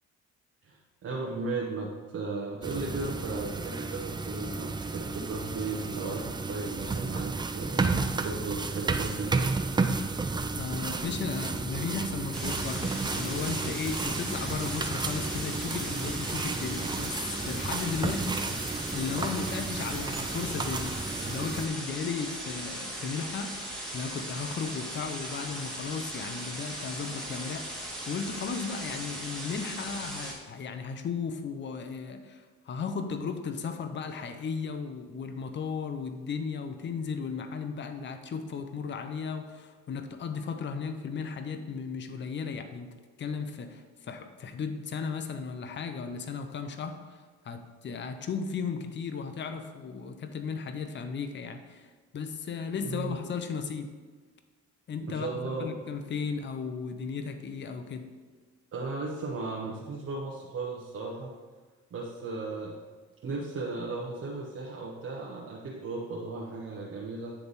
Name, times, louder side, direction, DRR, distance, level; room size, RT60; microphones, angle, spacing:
voice 1, 0.6-9.5 52.8-53.2 55.1-55.7 58.7-61.3 61.9-62.8 63.2-67.3, right 3 dB, 50° right, -3 dB, 1.0 m, -36 dB
sound 1, 2.6-21.7, right 3 dB, 15° right, 0.3 m, -32 dB
voice 2, 10.5-23.5 23.9-42.9 43.2-53.9 54.9-58.1, left 5 dB, 40° left, 7 dB, 0.6 m, -35 dB
sound 2, 12.3-30.3, right 1 dB, ahead, 1.8 m, -38 dB
9.8 x 3.5 x 4.0 m, 1.4 s
cardioid pair, 90°, 30 cm